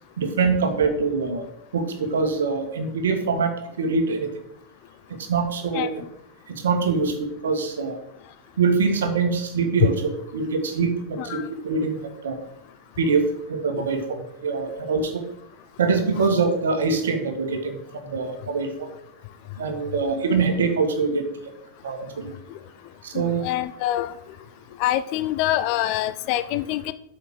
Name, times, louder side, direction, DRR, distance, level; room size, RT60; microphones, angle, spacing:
voice 1, 0.2-1.4 1.7-3.5 3.8-4.3 5.3-5.9 6.5-8.0 8.6-10.0 10.3-11.4 11.6-12.0 12.2-12.4 13.0-15.1 15.8-18.9 19.6-21.3 21.8-22.3 23.0-23.4, right 4 dB, 65° right, 6 dB, 1.6 m, -24 dB
voice 2, 11.2-11.5 23.1-24.1 24.8-26.9, left 13 dB, 45° left, 14 dB, 0.5 m, -25 dB
8.4 x 5.7 x 6.3 m, 0.76 s
figure-of-eight pair, 90°, 0 cm